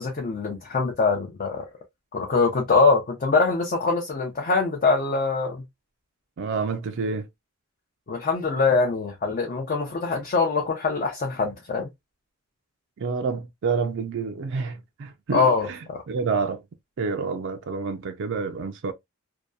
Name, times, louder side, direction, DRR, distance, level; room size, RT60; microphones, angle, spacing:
voice 1, 0.0-1.7 2.1-5.6 8.1-11.9 15.3-16.0, left 4 dB, 45° left, 0.5 m, -23 dB
voice 2, 6.4-7.3 13.0-15.8 16.1-16.6 17.0-18.9, right 5 dB, 65° right, 0.4 m, -28 dB
2.7 x 2.2 x 2.2 m
head